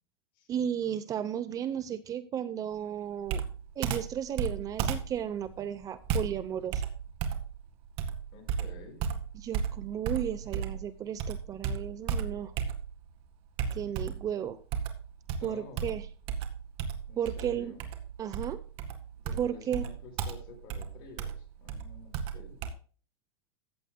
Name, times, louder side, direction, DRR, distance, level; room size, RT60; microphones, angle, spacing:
voice 1, 0.5-3.4 3.8-6.8 9.3-12.5 13.7-14.6 15.4-16.0 17.2-17.8 18.2-18.6 19.4-19.8, right 9 dB, 25° right, 14 dB, 0.7 m, -34 dB
Computer keyboard, 3.3-10.9 11.2-13.1 13.6-14.3 14.7-22.7, right 7 dB, 45° right, 1.9 m, -34 dB
voice 2, 8.3-9.0 15.3-16.0 17.1-17.8 19.2-22.6, left 4 dB, 40° left, 3 dB, 5.1 m, -50 dB
15.0 x 9.0 x 2.2 m, 0.39 s
supercardioid pair, 140°, 13 cm